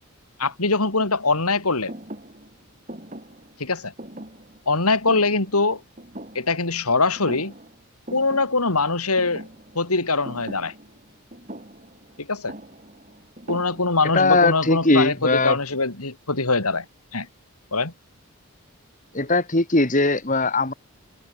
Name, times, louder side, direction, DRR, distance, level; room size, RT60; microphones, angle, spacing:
voice 1, 0.4-1.9 3.6-3.9 4.7-5.8 6.3-7.5 8.1-9.5 9.8-10.7 12.2-12.5 13.5-16.9 17.1-17.3 17.7-17.9, left 3 dB, 85° left, 4.0 m, -22 dB
Thump thud, 1.9-6.9 7.2-7.8 8.1-14.2, right 1 dB, 35° right, 6.2 m, -41 dB
voice 2, 14.1-15.6 19.1-20.7, left 2 dB, 35° left, 2.5 m, -20 dB
head